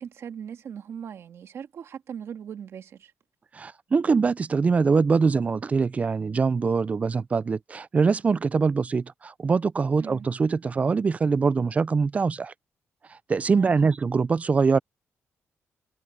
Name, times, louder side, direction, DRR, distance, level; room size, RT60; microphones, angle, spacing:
voice 1, 0.0-3.1 10.0-10.3 13.5-13.7, right 8 dB, 60° right, 1.8 m, -39 dB
voice 2, 3.5-12.5 13.1-14.8, right 5 dB, 30° right, 0.4 m, -23 dB
cardioid pair, 130°, 5 cm